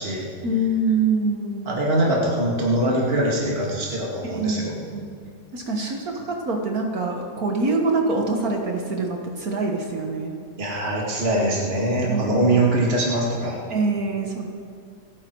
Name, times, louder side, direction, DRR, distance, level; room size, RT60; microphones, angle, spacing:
voice 1, 0.4-1.7 4.2-4.6 4.9-5.1 5.5-10.3 12.0-12.6 13.7-14.5, right 3 dB, 65° right, 1 dB, 1.9 m, -25 dB
voice 2, 1.7-4.7 5.8-5.9 10.6-13.6, right 1 dB, 35° right, -3 dB, 2.5 m, -22 dB
28.5 x 10.5 x 4.7 m, 2.3 s
omnidirectional pair, 1.7 m